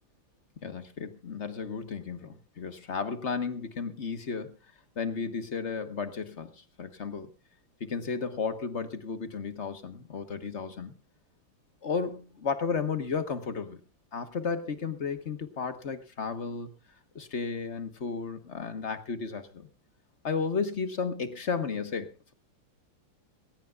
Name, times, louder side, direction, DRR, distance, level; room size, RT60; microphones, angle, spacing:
voice 1, 0.6-4.6 5.0-7.3 7.8-10.9 11.8-13.8 14.1-16.7 17.1-19.7 20.2-22.3, left 5 dB, 40° left, 9 dB, 1.3 m, -33 dB
20.0 x 17.5 x 2.4 m, 0.32 s
omnidirectional pair, 2.4 m